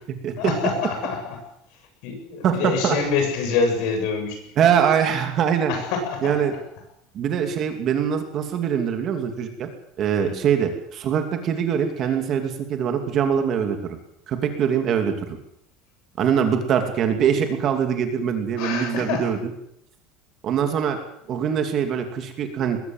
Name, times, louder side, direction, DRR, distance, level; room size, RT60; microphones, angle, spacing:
voice 1, 0.4-1.4 1.7-4.5 5.7-6.5 10.2-10.5 18.6-19.3, left 5 dB, 55° left, 4 dB, 7.3 m, -26 dB
voice 2, 2.4-3.0 4.6-5.7 6.2-6.5 7.1-9.7 10.0-14.0 14.3-15.4 16.2-19.4 20.4-21.0 21.3-22.9, right 8 dB, 30° right, 6 dB, 2.6 m, -23 dB
21.0 x 17.0 x 7.9 m, 0.75 s
cardioid pair, 175°, 0 cm